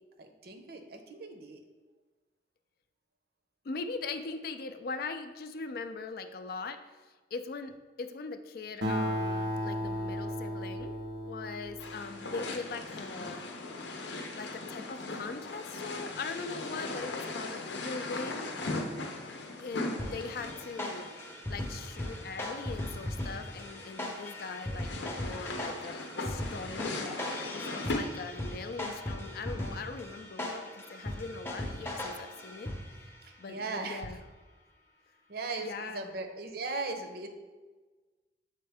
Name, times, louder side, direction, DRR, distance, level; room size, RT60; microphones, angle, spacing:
voice 1, 0.2-1.6 33.5-34.1 35.3-37.3, right 3 dB, 60° right, 5 dB, 0.6 m, -38 dB
voice 2, 3.6-6.8 7.3-11.0 11.2-13.5 14.3-18.5 19.6-21.0 21.5-27.0 27.5-32.7 33.4-34.2 35.6-36.1, left 4 dB, 55° left, 9 dB, 0.4 m, -40 dB
Acoustic guitar, 8.8-12.6, equal, 85° right, 0.9 m, -35 dB
sound 1, 11.8-28.0, left 2 dB, 80° left, 0.7 m, -39 dB
sound 2, 20.0-33.1, left 1 dB, 15° left, 0.6 m, -39 dB
6.6 x 4.3 x 3.4 m, 1.3 s
head